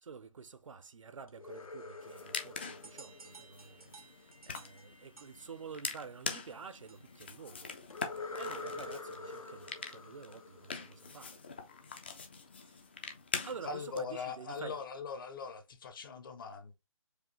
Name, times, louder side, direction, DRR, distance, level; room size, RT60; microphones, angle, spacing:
voice 1, 0.0-7.7 8.4-11.4 12.6-12.8 13.4-14.8, right 5 dB, 65° right, 0.6 m, -49 dB
sound 1, 1.3-4.2 7.9-11.6, left 3 dB, 75° left, 0.8 m, -46 dB
sound 2, 2.0-14.0, left 5 dB, 20° left, 0.4 m, -44 dB
sound 3, 2.8-7.3, right 4 dB, 90° right, 1.0 m, -57 dB
voice 2, 13.6-16.7, left 5 dB, 40° left, 0.8 m, -41 dB
4.8 x 2.4 x 3.0 m
figure-of-eight pair, 155°, 18 cm